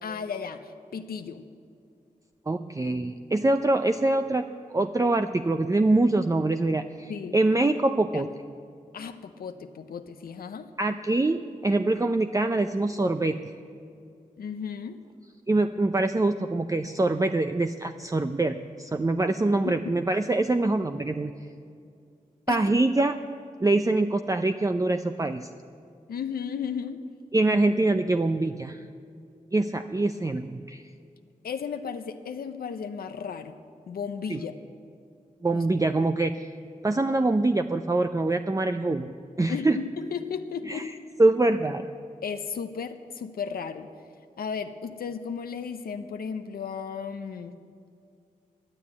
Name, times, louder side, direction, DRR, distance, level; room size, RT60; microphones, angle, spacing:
voice 1, 0.0-1.4 7.1-7.4 8.1-8.2 8.9-10.7 14.4-15.0 19.6-19.7 22.5-22.6 26.1-27.0 31.4-33.6 33.9-34.5 35.5-35.6 39.5-40.9 42.2-43.9 44.4-47.5, left 6 dB, 85° left, 8 dB, 0.6 m, -34 dB
voice 2, 2.5-8.3 10.8-13.4 15.5-21.3 22.5-23.2 23.6-25.5 27.3-28.8 29.5-30.8 34.3-34.4 35.4-36.4 36.8-39.1 39.4-39.8 40.7-40.9 41.2-41.8, right 2 dB, 20° right, 8 dB, 0.6 m, -24 dB
11.5 x 10.5 x 8.4 m, 2.4 s
cardioid pair, 40°, 15 cm